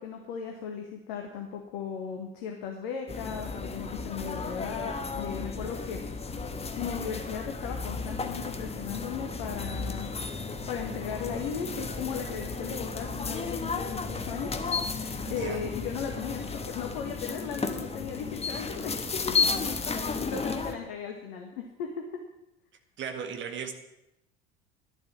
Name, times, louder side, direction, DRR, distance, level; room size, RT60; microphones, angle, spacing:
voice 1, 0.0-6.0 6.8-14.5 14.8-19.7 20.0-22.2, left 7 dB, 60° left, 2 dB, 1.7 m, -37 dB
sound 1, 3.1-20.7, left 4 dB, 20° left, 1.3 m, -33 dB
voice 2, 15.3-15.6 20.0-20.1 23.0-23.7, right 7 dB, 40° right, 6 dB, 1.9 m, -36 dB
11.5 x 7.9 x 7.5 m, 0.88 s
figure-of-eight pair, 65°, 31 cm